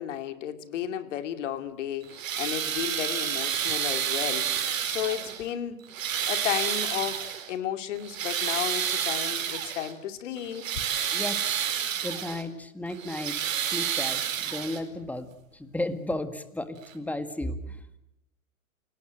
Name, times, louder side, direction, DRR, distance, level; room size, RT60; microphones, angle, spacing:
voice 1, 0.0-5.8 6.3-10.7, left 10 dB, 55° left, 8 dB, 2.7 m, -33 dB
sound 1, 2.0-5.5 5.9-7.5 8.0-9.9 10.4-12.4 12.9-15.0 16.1-16.2 16.8-16.9, right 9 dB, 65° right, 4.4 m, -30 dB
voice 2, 11.1-11.7 12.0-17.8, left 1 dB, 5° left, 10 dB, 1.8 m, -34 dB
28.5 x 18.5 x 9.0 m, 0.87 s
hypercardioid pair, 120°, 42 cm